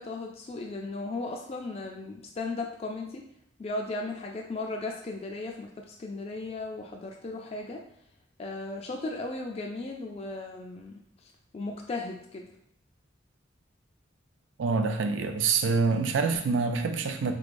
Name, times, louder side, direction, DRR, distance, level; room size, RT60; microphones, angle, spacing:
voice 1, 0.0-3.2 3.6-7.8 8.4-12.4, left 2 dB, 30° left, 1 dB, 0.3 m, -36 dB
voice 2, 14.6-17.3, right 4 dB, 70° right, 7 dB, 0.4 m, -26 dB
3.9 x 3.1 x 2.5 m, 0.73 s
head